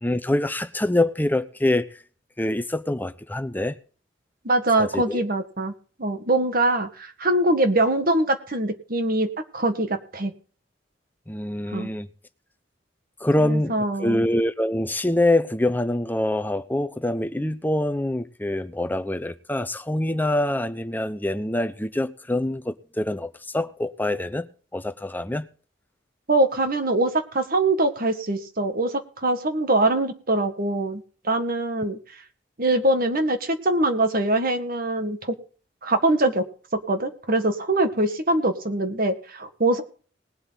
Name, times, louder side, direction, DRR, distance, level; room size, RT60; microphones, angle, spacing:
voice 1, 0.0-2.0 2.4-3.7 4.8-5.2 11.3-12.1 13.2-24.5 24.7-25.5, left 1 dB, 10° left, 0.8 m, -25 dB
voice 2, 4.4-5.7 6.0-9.3 9.5-10.3 11.7-11.9 13.4-14.2 26.3-32.0 32.6-35.3 35.8-36.4 36.7-39.8, right 2 dB, 50° right, 1.8 m, -23 dB
20.0 x 7.9 x 4.0 m
head